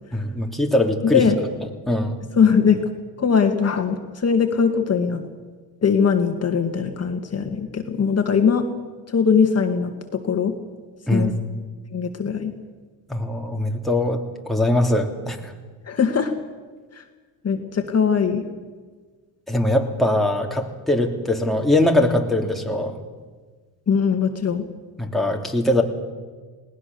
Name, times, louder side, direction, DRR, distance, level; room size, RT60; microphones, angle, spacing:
voice 1, 0.1-1.2 1.9-2.2 11.1-11.3 13.1-15.5 19.5-23.0 25.0-25.8, left 1 dB, ahead, 1 dB, 3.0 m, -21 dB
voice 2, 1.0-1.4 2.4-2.8 3.2-5.2 5.8-8.7 9.1-10.5 11.1-11.3 11.9-12.5 15.9-16.3 16.9-17.0 17.4-18.4 23.9-24.6, left 6 dB, 35° left, 5 dB, 2.2 m, -20 dB
20.0 x 18.5 x 7.1 m, 1.4 s
supercardioid pair, 80°, 44 cm